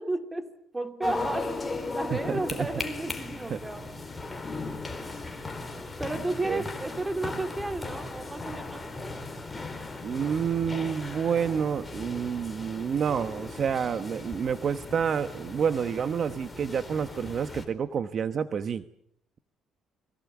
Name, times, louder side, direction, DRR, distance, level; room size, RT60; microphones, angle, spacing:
voice 1, 0.0-3.8 6.0-8.9, right 2 dB, 15° right, 7 dB, 2.8 m, -33 dB
sound 1, 1.0-17.7, left 3 dB, 15° left, 4.3 m, -37 dB
voice 2, 2.1-2.7 3.5-3.6 6.4-6.6 10.0-18.8, right 7 dB, 45° right, 11 dB, 1.1 m, -29 dB
29.5 x 23.0 x 7.2 m, 0.69 s
cardioid pair, 115°, 0 cm